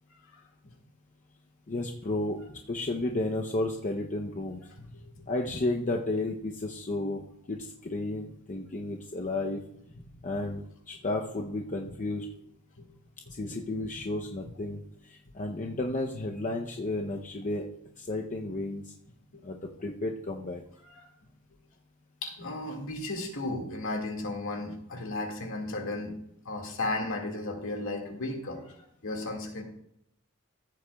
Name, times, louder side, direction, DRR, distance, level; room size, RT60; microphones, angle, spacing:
voice 1, 1.7-2.4 2.7-4.6 5.3-9.6 10.2-12.3 13.3-17.6 18.0-18.9 19.4-20.6, left 2 dB, 35° left, 1 dB, 0.7 m, -32 dB
voice 2, 4.8-5.3 9.9-10.0 11.9-12.0 12.8-12.9 13.3-13.4 19.3-19.4 20.8-21.1 22.2-26.2 26.5-29.6, left 2 dB, 60° left, 2 dB, 2.0 m, -35 dB
15.0 x 8.1 x 2.3 m, 0.74 s
head